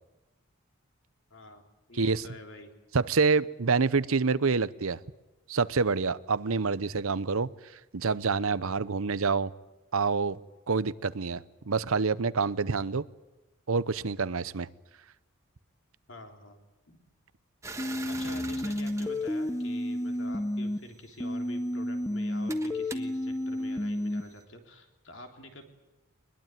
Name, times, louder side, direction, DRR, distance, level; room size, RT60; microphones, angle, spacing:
voice 1, 1.3-2.7 16.1-16.6 16.9-17.0 18.1-25.6, left 2 dB, 60° left, 3.5 m, -47 dB
voice 2, 2.9-5.0 5.5-7.5 7.9-9.5 9.9-10.4 10.7-13.0 13.7-14.7, right 4 dB, 80° right, 0.8 m, -27 dB
sound 1, 17.6-20.3 21.2-24.4, right 3 dB, 15° right, 1.3 m, -45 dB
sound 2, 17.8-20.8 21.2-24.2, left 1 dB, 15° left, 0.8 m, -31 dB
21.5 x 21.5 x 9.3 m
head